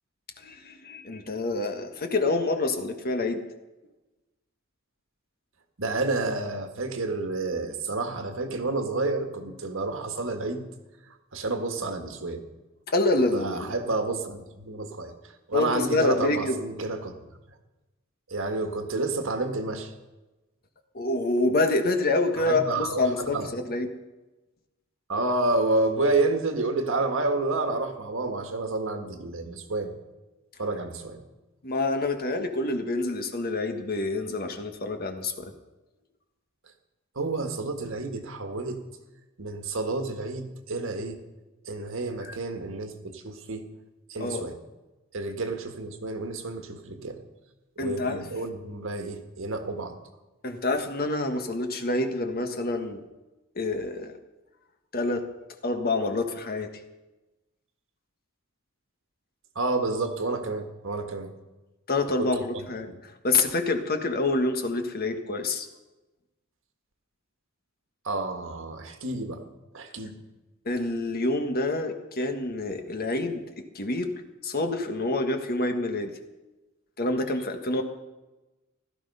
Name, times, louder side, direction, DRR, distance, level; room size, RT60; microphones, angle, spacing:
voice 1, 0.4-3.4 12.9-13.7 15.5-16.5 20.9-23.9 31.6-35.5 42.3-42.4 44.2-44.4 47.8-48.3 50.4-53.0 53.5-54.2 54.9-55.3 55.6-56.7 61.9-62.9 63.2-65.7 70.6-73.4 73.7-74.1 74.4-76.1 77.0-77.8, left 2 dB, 45° left, 6 dB, 1.5 m, -27 dB
voice 2, 5.8-10.6 11.1-12.4 13.3-17.1 18.3-19.9 22.4-23.5 25.1-29.9 30.6-31.2 37.1-38.8 39.4-41.2 41.6-43.7 44.1-44.6 45.1-47.2 47.8-50.0 59.5-61.3 62.1-63.0 68.0-69.4 69.7-70.2, right 2 dB, 65° right, 6 dB, 1.7 m, -30 dB
16.0 x 13.0 x 5.5 m, 1.1 s
head